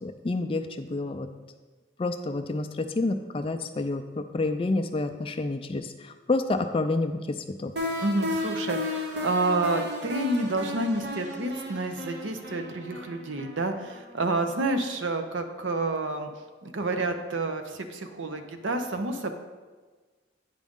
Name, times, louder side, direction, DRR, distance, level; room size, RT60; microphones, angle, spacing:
voice 1, 0.0-1.3 2.0-7.7, left 2 dB, 30° left, 7 dB, 0.4 m, -29 dB
sound 1, 7.8-14.5, left 1 dB, 60° right, 0.9 m, -34 dB
voice 2, 8.0-16.3 16.6-19.3, right 2 dB, 90° right, 7 dB, 0.7 m, -29 dB
9.1 x 5.1 x 3.6 m, 1.4 s
head